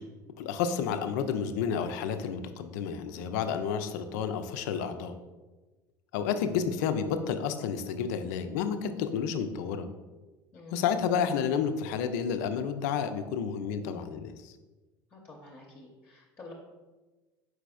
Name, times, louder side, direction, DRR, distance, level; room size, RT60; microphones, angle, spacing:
voice 1, 0.4-5.1 6.1-9.9 10.7-14.5, left 7 dB, 55° left, 9 dB, 0.4 m, -30 dB
voice 2, 10.5-10.8 15.1-16.5, left 2 dB, 25° left, -1 dB, 0.7 m, -49 dB
4.9 x 4.6 x 2.3 m, 1.2 s
figure-of-eight pair, 70°, 11 cm